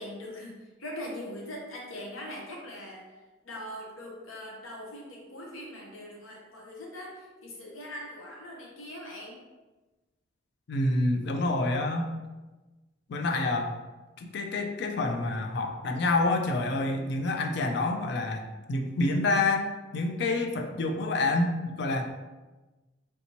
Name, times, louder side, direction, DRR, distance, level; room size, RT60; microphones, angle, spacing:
voice 1, 0.0-3.0 3.4-9.4, left 1 dB, 90° left, -1 dB, 0.8 m, -41 dB
voice 2, 10.7-12.1 13.1-13.7 14.2-22.0, left 2 dB, 55° left, 4 dB, 0.3 m, -28 dB
3.3 x 2.8 x 2.9 m, 1.2 s
head